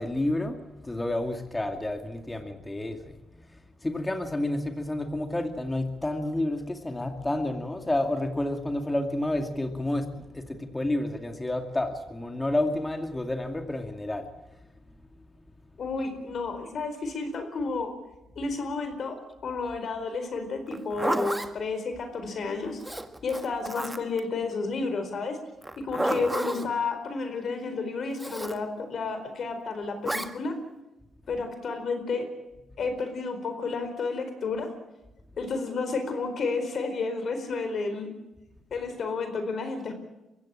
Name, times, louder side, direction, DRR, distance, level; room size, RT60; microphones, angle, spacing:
voice 1, 0.0-3.2 3.8-14.3, left 1 dB, 15° left, 5 dB, 2.3 m, -30 dB
voice 2, 15.8-17.9 18.4-22.8 23.2-25.4 25.8-30.5 31.3-32.3 32.8-34.7 35.4-38.1 38.7-39.9, left 4 dB, 55° left, 8 dB, 4.4 m, -31 dB
Zipper (clothing), 20.7-21.5 22.8-24.2 25.6-26.7 28.2-28.6 30.0-30.3, right 1 dB, 10° right, 1.7 m, -31 dB
24.0 x 16.0 x 8.8 m, 0.97 s
cardioid pair, 90°, 0 cm